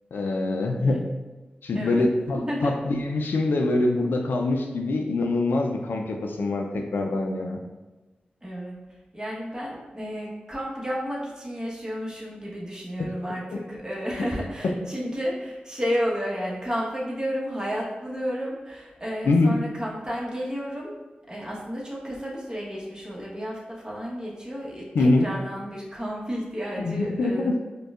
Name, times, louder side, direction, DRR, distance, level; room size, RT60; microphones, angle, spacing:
voice 1, 0.1-1.1 1.6-7.6 13.5-13.6 14.6-14.7 19.2-19.5 24.9-25.3 26.8-27.6, left 2 dB, 85° left, 3 dB, 0.4 m, -24 dB
voice 2, 1.7-2.7 8.4-8.8 9.1-20.9 21.3-27.6, equal, 20° right, -4 dB, 1.1 m, -32 dB
4.9 x 2.2 x 2.4 m, 1.2 s
cardioid pair, 40°, 3 cm